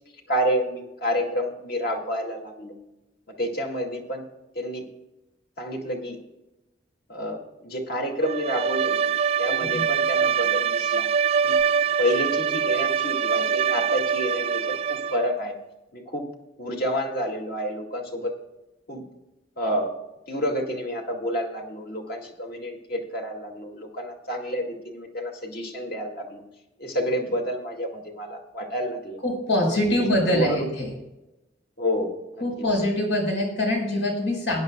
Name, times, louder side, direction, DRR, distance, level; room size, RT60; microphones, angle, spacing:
voice 1, 0.3-2.8 3.3-4.2 4.6-4.8 5.6-6.2 7.1-9.0 9.4-11.1 11.4-11.6 12.0-15.6 15.9-16.3 16.6-18.3 18.9-19.0 19.6-19.9 20.3-26.4 26.8-29.2 29.9-30.7 31.8-32.5, equal, 55° left, 1 dB, 2.2 m, -29 dB
Bowed string instrument, 8.2-15.3, right 7 dB, 35° right, 0.3 m, -24 dB
voice 2, 29.2-30.9 32.4-34.6, left 1 dB, 90° left, 0 dB, 4.9 m, -24 dB
19.5 x 10.0 x 2.3 m, 0.98 s
head